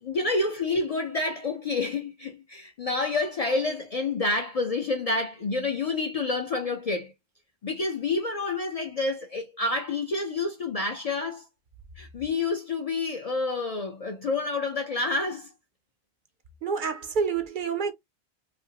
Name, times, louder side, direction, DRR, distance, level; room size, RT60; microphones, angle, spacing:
voice 1, 0.0-7.1 7.6-11.5 12.0-15.5, left 3 dB, 55° left, 0.4 m, -28 dB
voice 2, 16.6-17.9, right 5 dB, 60° right, 0.6 m, -28 dB
2.8 x 2.5 x 2.7 m
omnidirectional pair, 1.1 m